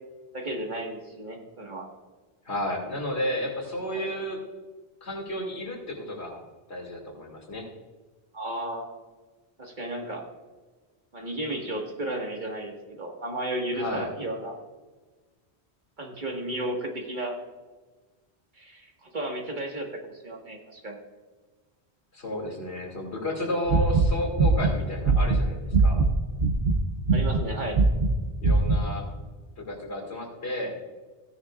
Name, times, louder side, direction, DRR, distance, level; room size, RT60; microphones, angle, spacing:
voice 1, 0.3-1.9 3.9-4.2 8.3-8.9 9.6-10.2 11.1-14.6 16.0-17.4 18.6-21.0 27.1-27.8, right 1 dB, 45° right, 1 dB, 1.9 m, -33 dB
voice 2, 2.4-4.4 5.0-6.4 6.7-7.7 13.7-14.1 22.1-26.0 28.4-29.1 29.6-30.8, left 1 dB, 80° left, 0 dB, 2.8 m, -32 dB
sound 1, 23.7-26.1 26.4-26.8 27.0-27.5 27.7-28.1 28.4-28.8, right 4 dB, 65° right, 1.2 m, -21 dB
16.0 x 10.0 x 2.4 m, 1.3 s
omnidirectional pair, 1.1 m